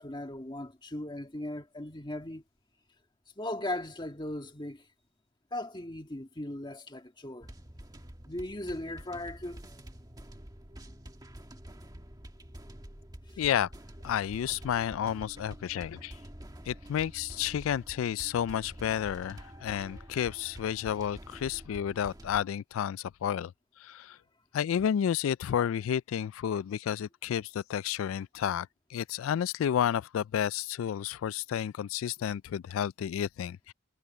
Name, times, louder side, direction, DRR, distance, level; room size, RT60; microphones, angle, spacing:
voice 1, 0.0-2.4 3.4-4.8 5.5-7.5 8.3-9.6 13.3-13.4, left 1 dB, 20° left, 1.7 m, -38 dB
sound 1, 7.4-22.4, equal, 20° right, 1.6 m, -48 dB
voice 2, 13.4-13.7 14.0-16.2 16.7-23.5 23.8-24.2 24.5-33.7, left 9 dB, 80° left, 0.3 m, -31 dB
head